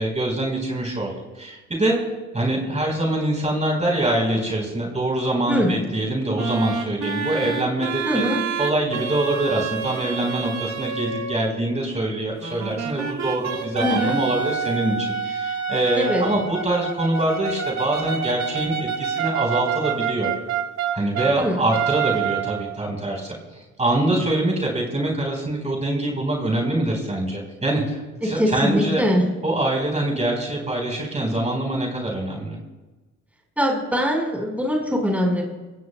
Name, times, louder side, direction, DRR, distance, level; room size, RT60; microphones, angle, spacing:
voice 1, 0.0-2.0 2.3-8.2 8.6-20.3 20.9-23.4 23.8-29.0 29.4-32.6, right 1 dB, 20° right, 0 dB, 4.1 m, -24 dB
sound 1, 6.4-11.5 12.4-21.4 21.7-22.8, right 7 dB, 65° right, 1.7 m, -27 dB
voice 2, 8.0-8.4 13.8-14.2 15.9-16.2 21.3-21.6 28.2-29.2 33.6-35.4, equal, 5° right, 0 dB, 4.3 m, -22 dB
24.0 x 16.5 x 2.2 m, 1.2 s
cardioid pair, 90°, 30 cm